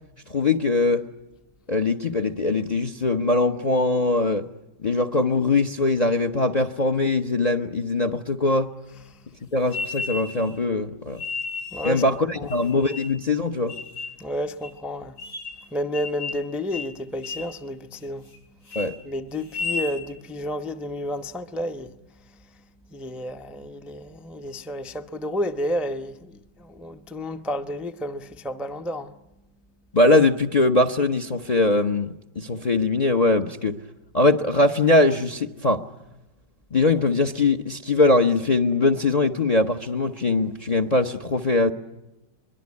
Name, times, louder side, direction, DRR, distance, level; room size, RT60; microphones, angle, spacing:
voice 1, 0.3-1.1 1.7-4.5 4.8-8.7 9.5-11.2 11.8-13.8 18.7-18.9 29.9-33.8 34.1-35.8 36.7-41.7, left 2 dB, 30° left, 0.8 m, -21 dB
sound 1, 9.7-10.5 11.2-12.0 12.5-13.2 13.7-14.2 14.6-14.7 15.2-15.6 15.9-16.5 16.7-16.9 17.2-17.5 17.9-18.4 18.6-18.9 19.4-20.0, left 4 dB, 85° left, 8.4 m, -33 dB
voice 2, 11.7-12.0 12.4-12.5 14.2-15.2 15.6-18.3 19.0-29.2, left 1 dB, ahead, 0.7 m, -31 dB
23.5 x 22.5 x 9.7 m
omnidirectional pair, 1.9 m